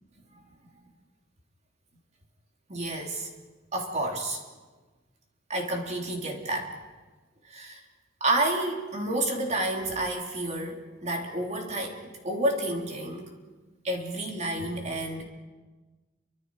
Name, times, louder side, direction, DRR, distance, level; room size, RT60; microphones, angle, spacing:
voice 1, 2.7-3.3 3.7-4.4 5.5-6.8 7.4-7.8 8.2-13.3 13.8-15.2, right 1 dB, 35° right, 1 dB, 3.3 m, -30 dB
29.5 x 25.0 x 4.9 m, 1.3 s
head